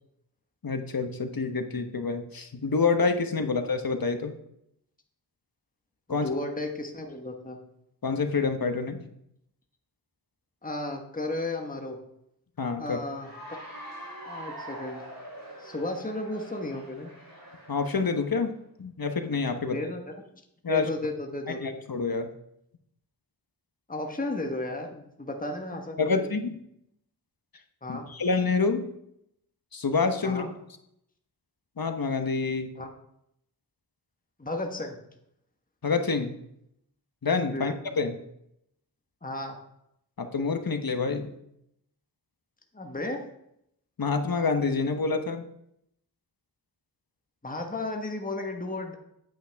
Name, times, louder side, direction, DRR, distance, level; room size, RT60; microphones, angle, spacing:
voice 1, 0.6-4.3 6.1-6.3 8.0-9.0 12.6-13.0 17.7-18.5 18.8-19.8 20.6-20.9 21.6-22.3 26.0-26.6 27.9-28.8 29.7-30.5 31.8-32.7 35.8-36.4 37.2-38.2 40.2-41.3 44.0-45.4, left 4 dB, 55° left, 6 dB, 1.1 m, -27 dB
voice 2, 6.1-7.6 10.6-12.0 12.8-13.3 14.2-15.0 15.6-17.1 19.7-20.1 20.7-21.8 23.9-26.3 27.8-28.1 30.2-30.5 32.8-32.9 34.4-35.0 37.5-37.7 39.2-39.6 42.7-43.3 47.4-48.9, left 2 dB, 20° left, 3 dB, 1.3 m, -34 dB
Cheering / Applause, 13.1-18.3, right 1 dB, 50° right, 3.5 m, -44 dB
9.1 x 8.3 x 3.5 m, 0.76 s
wide cardioid pair, 55°, 41 cm